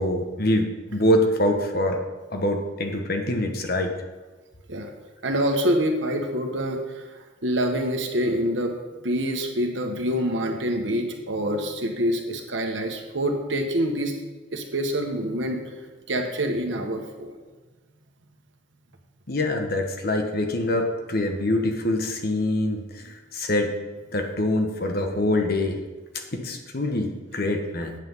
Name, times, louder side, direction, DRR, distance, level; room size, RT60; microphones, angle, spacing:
voice 1, 0.0-2.0 2.3-3.9 19.3-23.7 24.1-25.8 26.3-28.0, left 1 dB, 50° left, 4 dB, 1.2 m, -24 dB
voice 2, 5.2-7.0 7.4-8.8 9.0-14.2 14.5-15.7 16.1-17.3 27.8-27.9, equal, 70° right, 3 dB, 1.4 m, -26 dB
9.0 x 5.9 x 7.2 m, 1.3 s
head